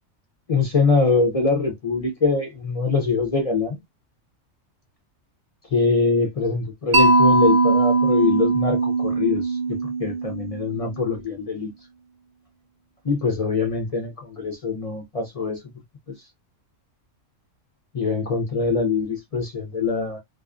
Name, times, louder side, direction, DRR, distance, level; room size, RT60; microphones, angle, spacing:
voice 1, 0.5-3.8 5.7-11.7 13.0-15.6 16.1-16.2 17.9-20.2, left 4 dB, 55° left, 0.4 m, -23 dB
Mallet percussion, 6.9-10.9, right 3 dB, 60° right, 0.4 m, -20 dB
2.4 x 2.3 x 2.3 m
omnidirectional pair, 1.4 m